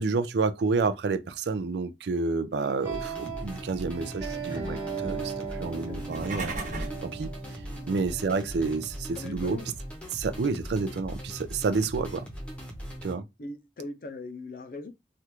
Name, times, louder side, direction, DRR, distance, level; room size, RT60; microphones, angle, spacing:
voice 1, 0.0-9.6 10.1-12.3 13.0-13.2, right 4 dB, 75° right, 0.4 m, -30 dB
sound 1, 2.6-9.6, right 5 dB, 20° right, 0.9 m, -38 dB
sound 2, 2.8-13.1, equal, 5° left, 0.7 m, -40 dB
sound 3, 5.9-7.1, right 2 dB, 45° right, 1.1 m, -35 dB
voice 2, 9.1-9.7 13.4-14.9, left 2 dB, 50° left, 0.5 m, -40 dB
3.2 x 2.4 x 3.0 m
head